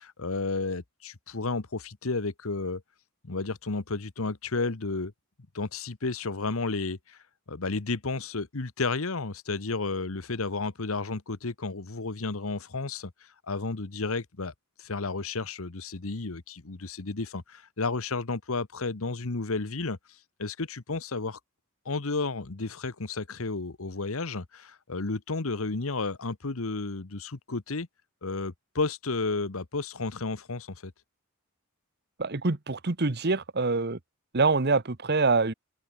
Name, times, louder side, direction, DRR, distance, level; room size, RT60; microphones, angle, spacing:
voice 1, 0.0-2.8 3.2-5.1 5.5-7.2 7.5-13.1 13.5-14.5 14.8-20.0 20.4-21.4 21.8-27.9 28.2-30.9, left 3 dB, 65° left, 1.1 m, -32 dB
voice 2, 32.2-34.0 34.3-35.5, right 3 dB, 45° right, 1.1 m, -25 dB
head